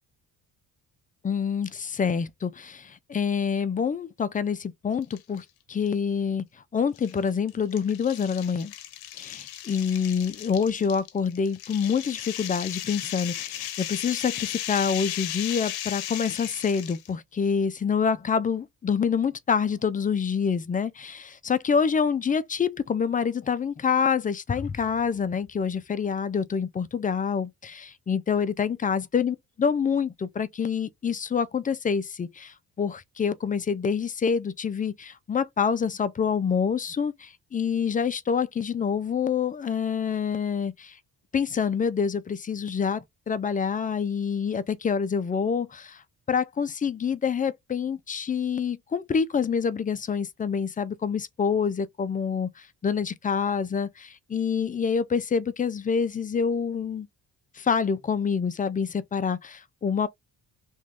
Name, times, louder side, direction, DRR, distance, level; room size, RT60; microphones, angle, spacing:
voice 1, 1.2-6.4 6.7-8.7 9.2-41.0 41.3-46.0 46.3-57.1 57.6-60.1, left 6 dB, 25° left, 0.4 m, -27 dB
sound 1, 5.0-5.4 5.9-6.0 7.0-17.1, left 12 dB, 85° left, 0.7 m, -36 dB
3.0 x 2.6 x 3.5 m
cardioid pair, 120°, 37 cm